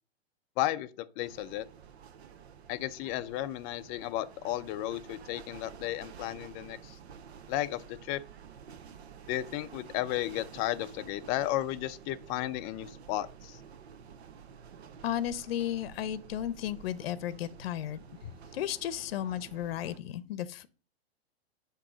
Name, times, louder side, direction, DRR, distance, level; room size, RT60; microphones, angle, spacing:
voice 1, 0.6-0.9 1.2-1.7 2.7-7.0 7.5-8.2 9.3-13.6, left 14 dB, 30° left, 0.4 m, -34 dB
sound 1, 1.2-20.0, right 7 dB, 85° right, 0.8 m, -50 dB
voice 2, 15.0-20.7, left 11 dB, 65° left, 0.7 m, -34 dB
8.5 x 3.0 x 6.0 m
hypercardioid pair, 130°, 32 cm